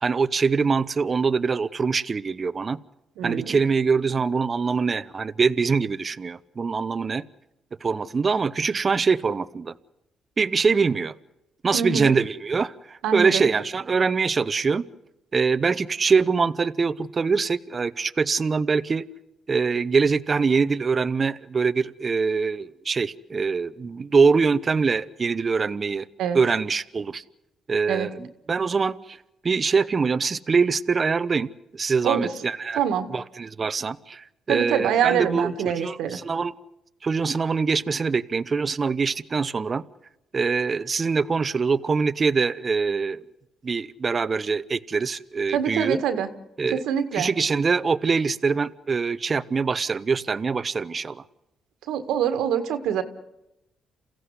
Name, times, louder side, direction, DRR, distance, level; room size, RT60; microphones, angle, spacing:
voice 1, 0.0-2.8 3.2-7.2 7.8-9.7 10.4-11.1 11.6-14.9 15.3-19.1 19.5-26.1 26.3-27.2 27.7-29.2 29.4-32.8 33.1-36.5 37.0-39.8 40.3-43.2 43.6-46.0 46.6-46.8 47.1-51.2, right 5 dB, 35° right, 13 dB, 0.8 m, -24 dB
voice 2, 3.2-3.6 11.7-12.1 13.0-13.5 26.2-26.4 27.9-28.1 32.0-32.3 32.7-33.1 34.5-36.2 45.5-46.3 46.7-47.3 51.9-53.0, right 8 dB, 85° right, 9 dB, 1.9 m, -25 dB
28.5 x 15.5 x 9.7 m, 0.92 s
cardioid pair, 90°, 0 cm